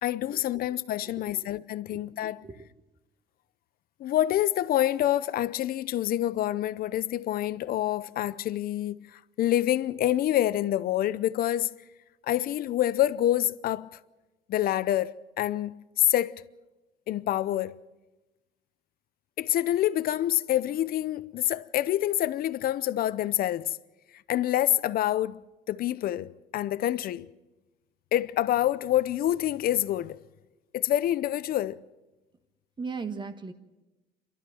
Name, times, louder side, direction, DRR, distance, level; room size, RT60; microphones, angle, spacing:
voice 1, 0.0-2.4 4.0-11.8 12.2-14.0 14.5-16.4 17.1-17.8 19.4-23.8 24.1-27.3 28.1-30.2 30.7-31.8, left 13 dB, 60° left, 0.7 m, -27 dB
voice 2, 32.8-33.5, right 5 dB, 25° right, 1.5 m, -36 dB
28.0 x 12.5 x 7.8 m
cardioid pair, 110°, 17 cm